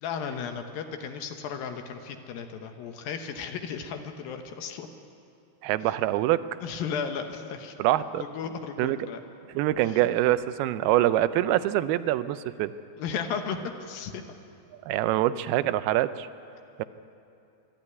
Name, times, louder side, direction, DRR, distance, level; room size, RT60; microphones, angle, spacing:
voice 1, 0.0-4.9 5.9-6.0 6.6-7.7 8.2-9.2 9.8-10.0 13.0-14.2, left 6 dB, 75° left, 6 dB, 2.7 m, -35 dB
voice 2, 5.6-6.4 7.8-8.2 8.8-9.0 9.6-12.7 14.9-16.3 16.8-16.9, right 14 dB, 90° right, 13 dB, 2.6 m, -24 dB
24.5 x 12.0 x 9.6 m, 2.7 s
omnidirectional pair, 4.4 m